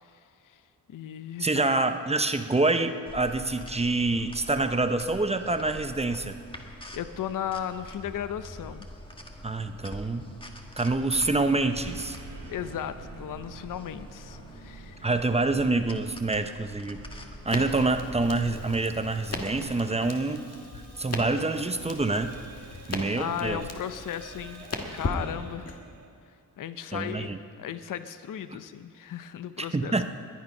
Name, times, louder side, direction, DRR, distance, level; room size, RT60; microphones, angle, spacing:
voice 1, 0.0-0.6 0.9-1.6 6.9-8.9 12.5-15.1 23.2-24.6 24.9-25.8 26.6-27.3 27.6-29.9, left 9 dB, 60° left, 11 dB, 0.7 m, -36 dB
voice 2, 1.4-6.4 9.4-10.3 10.8-12.2 15.0-17.0 17.4-20.4 20.7-22.4 22.9-23.6 26.9-27.4 28.5-28.6 29.6-30.0, right 2 dB, 15° right, 8 dB, 0.7 m, -26 dB
sound 1, 3.1-19.6, equal, 15° left, 1.4 m, -45 dB
sound 2, 11.7-26.1, right 4 dB, 70° right, 2.2 m, -49 dB
Crackle, 17.5-25.8, left 3 dB, 45° left, 1.7 m, -38 dB
21.0 x 9.5 x 5.4 m, 2.3 s
cardioid pair, 90°, 36 cm